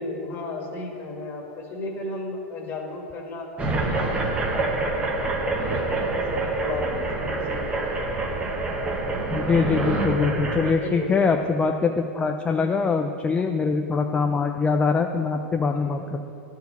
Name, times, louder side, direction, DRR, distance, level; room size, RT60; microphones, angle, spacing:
voice 1, 0.0-5.2 5.5-7.7 10.8-11.3 15.6-16.0, left 2 dB, 30° left, 1 dB, 1.8 m, -34 dB
sound 1, 3.6-10.7, right 2 dB, 15° right, 1.1 m, -26 dB
voice 2, 9.3-16.3, left 4 dB, 15° left, 4 dB, 0.4 m, -23 dB
10.5 x 4.6 x 8.1 m, 2.8 s
supercardioid pair, 130°, 7 cm